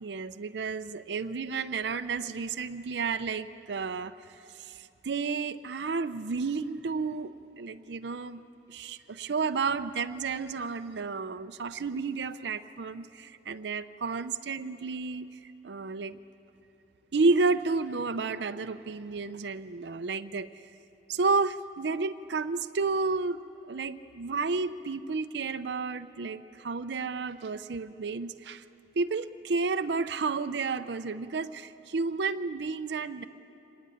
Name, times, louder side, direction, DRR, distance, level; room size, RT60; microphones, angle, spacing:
voice 1, 0.0-8.4 8.7-16.2 17.1-20.5 21.1-23.4 23.7-28.6 29.0-33.2, right 4 dB, 70° right, 9 dB, 0.5 m, -31 dB
24.5 x 18.5 x 9.8 m, 2.9 s
head